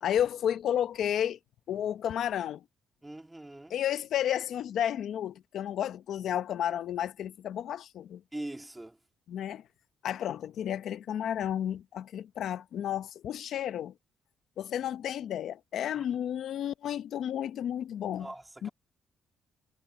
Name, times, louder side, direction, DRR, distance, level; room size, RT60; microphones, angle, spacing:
voice 1, 0.0-1.4 1.7-2.6 3.7-8.2 9.3-9.6 10.0-13.9 14.6-18.3 18.6-18.7, left 10 dB, 70° left, 0.9 m, -32 dB
voice 2, 3.0-3.8 8.3-9.0 15.9-16.1 18.2-18.7, right 1 dB, 10° right, 2.4 m, -42 dB
cardioid pair, 90°, 0 cm